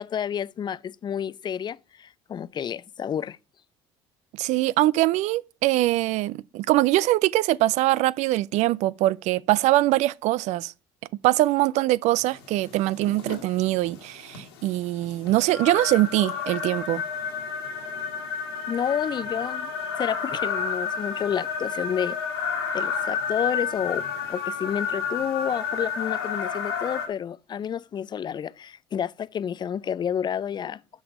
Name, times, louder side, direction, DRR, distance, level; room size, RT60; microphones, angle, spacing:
voice 1, 0.0-3.4 18.7-19.7 20.0-22.2 22.7-30.8, left 8 dB, 35° left, 0.4 m, -30 dB
voice 2, 4.4-10.7 11.2-17.0, right 16 dB, 65° right, 0.4 m, -23 dB
sound 1, 12.2-27.1, left 6 dB, 90° left, 2.0 m, -31 dB
6.4 x 5.4 x 5.8 m
hypercardioid pair, 70°, 13 cm